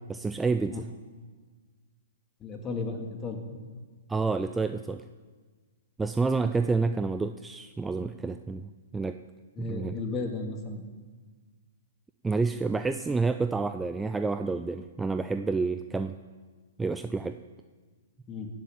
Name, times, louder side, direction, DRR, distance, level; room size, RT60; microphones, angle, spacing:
voice 1, 0.1-0.8 4.1-5.0 6.0-8.6 8.9-9.2 9.6-10.0 12.2-16.1 16.8-17.4, right 4 dB, 10° right, 9 dB, 0.5 m, -29 dB
voice 2, 2.4-3.4 9.6-10.8 18.3-18.5, left 3 dB, 25° left, 2 dB, 2.4 m, -34 dB
16.5 x 7.5 x 8.6 m, 1.4 s
hypercardioid pair, 125°, 0 cm